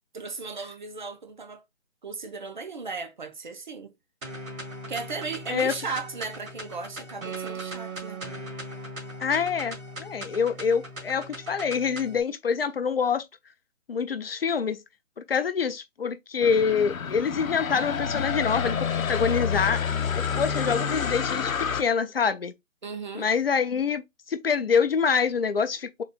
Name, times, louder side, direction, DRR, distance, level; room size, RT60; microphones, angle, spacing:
voice 1, 0.1-1.6 2.0-3.9 4.9-8.3 22.8-23.3, right 4 dB, 40° right, 0.5 m, -36 dB
sound 1, 4.2-12.2, right 1 dB, 80° right, 1.6 m, -39 dB
voice 2, 9.2-13.3 13.9-14.8 15.3-19.8 20.1-22.5 23.1-26.0, left 6 dB, 50° left, 0.5 m, -26 dB
sound 2, 16.4-21.8, left 6 dB, 90° left, 0.7 m, -28 dB
3.8 x 2.5 x 3.4 m
figure-of-eight pair, 155°, 40 cm